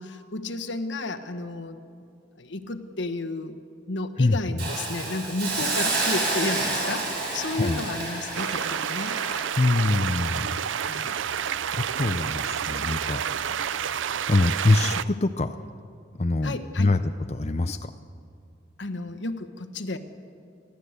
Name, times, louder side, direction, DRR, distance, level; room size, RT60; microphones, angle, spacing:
voice 1, 0.0-1.8 2.4-3.6 3.9-9.1 10.9-11.2 16.4-16.9 18.8-20.0, left 2 dB, 75° left, 9 dB, 1.3 m, -32 dB
voice 2, 4.2-4.7 7.6-7.8 9.6-10.6 10.9-11.4 11.7-13.7 14.0-15.6 16.2-17.0 17.3-17.9, left 2 dB, 35° left, 8 dB, 0.5 m, -25 dB
Hiss, 4.6-11.6 12.0-12.2, right 3 dB, 60° right, 7.0 m, -30 dB
sound 1, 8.3-15.0, right 8 dB, 90° right, 0.5 m, -29 dB
30.0 x 12.0 x 8.1 m, 2.5 s
head